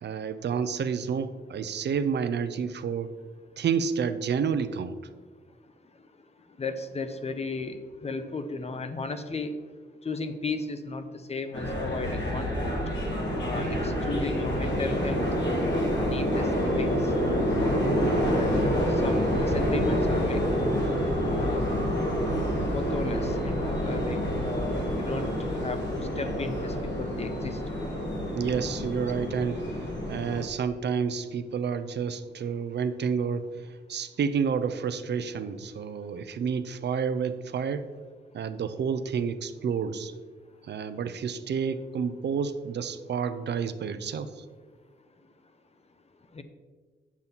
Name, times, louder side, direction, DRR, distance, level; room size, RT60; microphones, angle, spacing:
voice 1, 0.0-3.1 3.6-5.0 28.3-37.9 38.3-40.1 40.6-44.4, right 6 dB, 70° right, 11 dB, 0.6 m, -30 dB
voice 2, 6.6-9.6 10.0-12.7 13.4-17.1 18.3-20.4 21.2-21.7 22.7-25.3 25.6-27.6 46.3-46.4, left 3 dB, 35° left, 9 dB, 0.7 m, -35 dB
sound 1, 11.5-30.4, equal, 75° left, 2.2 m, -27 dB
8.7 x 7.2 x 4.1 m, 1.4 s
wide cardioid pair, 135°, 19 cm